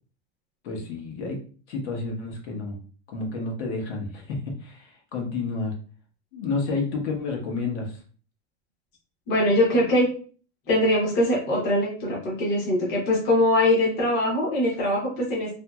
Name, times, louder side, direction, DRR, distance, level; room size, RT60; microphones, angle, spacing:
voice 1, 0.6-1.4 1.7-2.8 3.1-5.7 6.3-8.0, left 3 dB, 70° left, 1 dB, 1.1 m, -30 dB
voice 2, 9.3-10.1 10.7-15.5, left 1 dB, 30° left, -4 dB, 0.9 m, -22 dB
2.8 x 2.7 x 2.3 m, 0.41 s
supercardioid pair, 165°, 36 cm